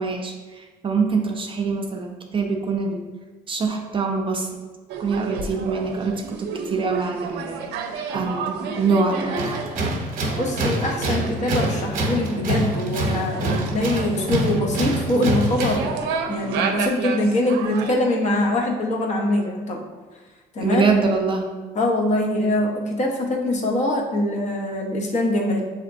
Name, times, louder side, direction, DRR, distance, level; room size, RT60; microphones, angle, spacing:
voice 1, 0.0-3.0 3.5-4.5 5.0-7.7 8.1-9.7 20.6-21.5, right 4 dB, 30° right, 2 dB, 0.4 m, -24 dB
sound 1, 4.9-17.9, right 5 dB, 90° right, 0.4 m, -32 dB
Tools, 9.4-15.9, right 1 dB, 50° right, 0.8 m, -25 dB
voice 2, 10.4-15.9 16.3-19.8 20.5-20.9 21.7-25.6, left 1 dB, 45° left, 1 dB, 0.8 m, -23 dB
5.9 x 2.8 x 2.5 m, 1.3 s
cardioid pair, 110°, 17 cm